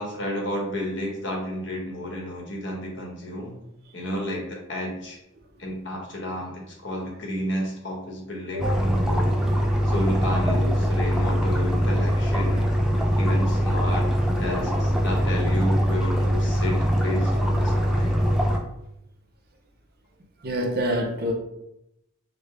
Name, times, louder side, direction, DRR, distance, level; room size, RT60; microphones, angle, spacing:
voice 1, 0.0-3.6 3.9-5.2 5.6-9.3 9.8-12.7 13.2-14.1 14.3-18.1, left 1 dB, 65° left, -1 dB, 1.1 m, -31 dB
sound 1, 8.6-18.6, equal, 5° right, 0.4 m, -22 dB
voice 2, 20.4-21.3, equal, 50° right, 1 dB, 0.7 m, -26 dB
5.2 x 2.1 x 3.4 m, 0.80 s
head